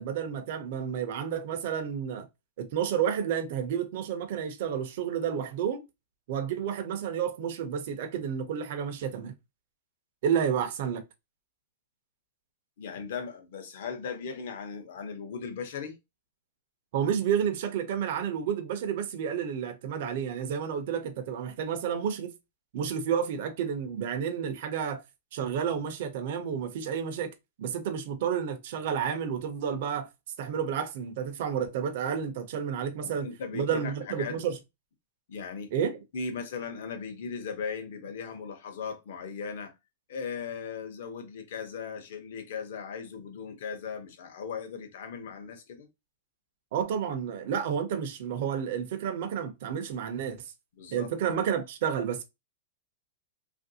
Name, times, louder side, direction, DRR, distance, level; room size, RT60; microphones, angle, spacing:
voice 1, 0.0-2.3 2.6-5.8 6.3-9.3 10.2-11.0 16.9-22.3 22.7-25.0 25.3-27.3 27.6-30.1 30.4-33.3 33.5-34.6 35.7-36.0 46.7-50.4 50.9-52.2, right 8 dB, 45° right, 0.5 m, -30 dB
voice 2, 12.8-16.0 33.0-34.4 35.3-35.7 36.1-39.7 40.1-45.9 50.8-51.1, left 6 dB, 55° left, 0.8 m, -38 dB
3.0 x 2.5 x 2.7 m
supercardioid pair, 175°, 0 cm